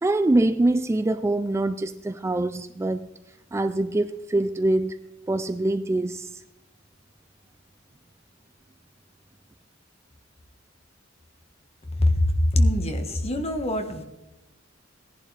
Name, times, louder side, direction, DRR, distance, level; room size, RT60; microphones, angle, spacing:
voice 1, 0.0-3.1 3.5-5.0 5.3-6.4, right 2 dB, 15° right, 0.3 m, -24 dB
voice 2, 12.0-14.0, left 1 dB, 30° left, 1.4 m, -23 dB
18.0 x 11.0 x 3.3 m
head